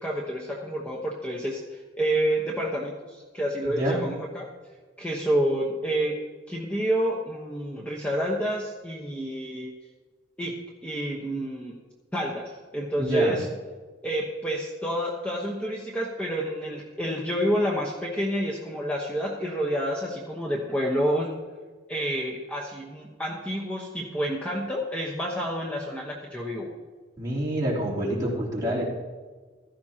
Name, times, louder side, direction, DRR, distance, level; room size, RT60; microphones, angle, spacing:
voice 1, 0.0-4.5 5.0-6.2 6.5-9.7 10.4-10.5 10.8-11.7 12.1-13.5 14.0-21.3 21.9-26.7, equal, 5° left, -4 dB, 1.0 m, -29 dB
voice 2, 3.6-4.0 13.0-13.4 27.2-28.9, right 1 dB, 20° right, -7 dB, 3.4 m, -27 dB
15.5 x 13.0 x 2.9 m, 1.4 s
head